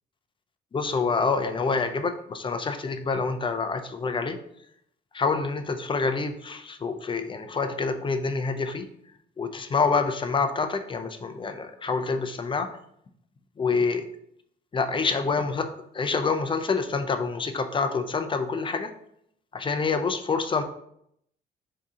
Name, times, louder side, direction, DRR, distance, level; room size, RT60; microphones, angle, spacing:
voice 1, 0.7-4.4 5.1-8.9 9.4-12.7 13.6-14.1 14.7-15.7 15.9-18.9 19.5-20.6, left 4 dB, 25° left, 8 dB, 0.4 m, -27 dB
3.7 x 2.8 x 3.6 m, 0.73 s
cardioid pair, 90°, 20 cm